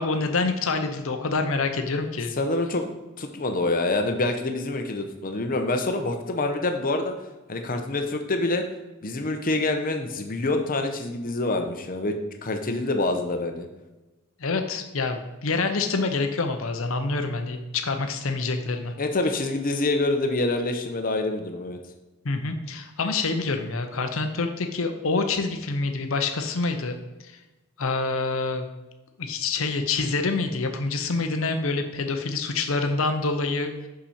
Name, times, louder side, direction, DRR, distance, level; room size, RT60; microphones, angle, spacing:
voice 1, 0.0-2.3 14.4-18.9 22.2-27.0 27.2-27.3 27.8-28.6 29.2-33.7, left 3 dB, 70° left, 6 dB, 0.8 m, -26 dB
voice 2, 2.4-2.9 3.2-7.1 7.5-8.6 9.0-13.7 19.0-21.8, left 2 dB, 45° left, 5 dB, 0.9 m, -26 dB
6.1 x 5.8 x 4.3 m, 1.1 s
head